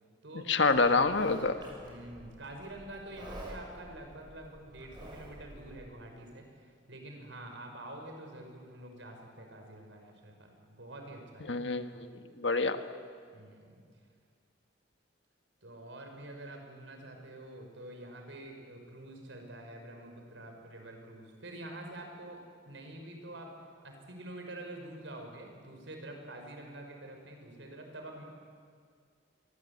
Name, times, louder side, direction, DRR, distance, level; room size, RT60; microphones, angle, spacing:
voice 1, 0.5-1.6 11.5-12.1 12.4-12.8, left 3 dB, 75° left, 8 dB, 1.6 m, -27 dB
Livestock farm animals working animals, 0.7-5.7, right 1 dB, 25° right, 6.6 m, -49 dB
voice 2, 1.8-11.8 13.3-13.8 15.6-23.5 23.8-28.2, right 1 dB, 85° right, 3 dB, 5.8 m, -47 dB
27.0 x 23.5 x 8.6 m, 2.1 s
head